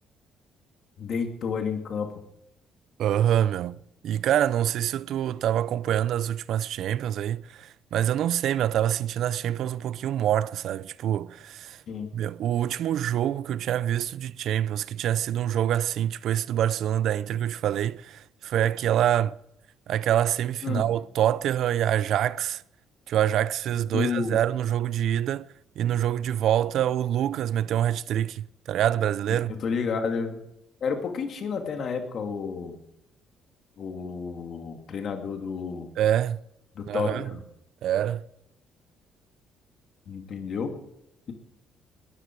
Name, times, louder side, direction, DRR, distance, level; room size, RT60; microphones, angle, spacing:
voice 1, 1.0-2.1 11.9-12.1 20.6-20.9 23.9-24.4 29.3-30.4 30.8-32.8 33.8-35.9 36.8-37.4 40.1-40.7, left 5 dB, 45° left, 2.5 m, -31 dB
voice 2, 3.0-11.8 12.1-19.4 19.9-22.6 23.1-25.5 25.8-29.5 36.0-36.4 36.9-37.3 37.8-38.3, right 11 dB, 60° right, 0.5 m, -26 dB
20.0 x 13.0 x 4.7 m
cardioid pair, 150°, 0 cm